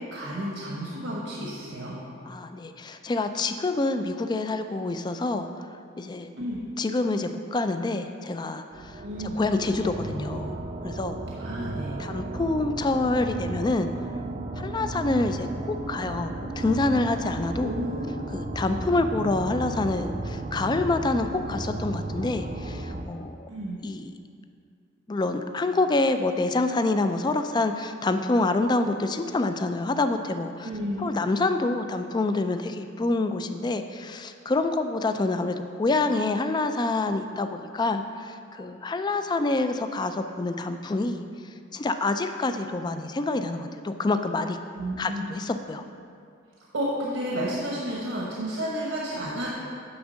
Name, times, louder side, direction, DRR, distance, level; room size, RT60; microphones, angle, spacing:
voice 1, 0.0-2.0 6.3-6.6 9.0-9.4 11.4-11.9 17.6-18.0 23.5-23.8 30.6-31.1 44.7-45.3 46.7-49.5, equal, 80° right, -4 dB, 1.1 m, -31 dB
voice 2, 2.3-5.5 6.0-6.3 6.8-9.0 9.4-11.2 12.0-13.9 14.6-17.7 18.3-23.5 23.8-24.1 25.1-30.7 31.0-41.2 41.7-44.6 45.0-45.8, left 2 dB, 20° left, 8 dB, 0.3 m, -27 dB
sound 1, 8.7-23.0, right 2 dB, 40° right, 0.5 m, -34 dB
9.5 x 3.6 x 6.2 m, 2.3 s
head